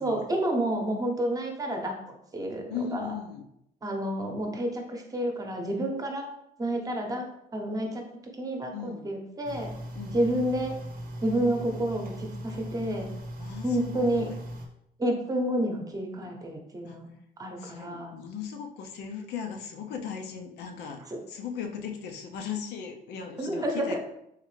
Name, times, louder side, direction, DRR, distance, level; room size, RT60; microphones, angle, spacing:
voice 1, 0.0-3.1 3.8-6.3 6.6-7.2 7.5-8.1 8.4-9.7 10.1-10.7 11.2-13.1 13.6-14.3 15.0-17.1 17.4-18.1 23.4-24.0, right 1 dB, 20° right, 2 dB, 0.8 m, -29 dB
voice 2, 2.7-3.5 8.7-9.1 9.9-10.3 13.4-14.4 16.2-16.3 16.8-17.1 17.6-24.0, left 7 dB, 80° left, 4 dB, 0.6 m, -38 dB
sound 1, 9.4-14.7, equal, 60° right, 0.7 m, -39 dB
3.7 x 3.2 x 3.2 m, 0.78 s
cardioid pair, 110°, 17 cm